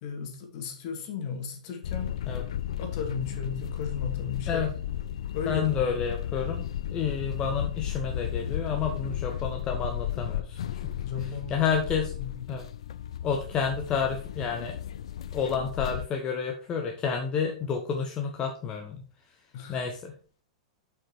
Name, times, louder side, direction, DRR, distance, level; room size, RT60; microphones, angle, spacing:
voice 1, 0.0-2.2 2.8-4.9 5.3-5.9 11.0-11.8 12.2-12.5 19.5-19.8, left 6 dB, 45° left, 5 dB, 2.2 m, -35 dB
sound 1, 1.8-16.1, left 11 dB, 65° left, 0.5 m, -34 dB
voice 2, 5.5-10.8 11.5-12.1 12.5-12.6 13.2-14.8 15.3-19.0 19.7-20.1, left 6 dB, 30° left, 3 dB, 1.0 m, -30 dB
7.1 x 5.9 x 4.4 m, 0.42 s
figure-of-eight pair, 100°, 3 cm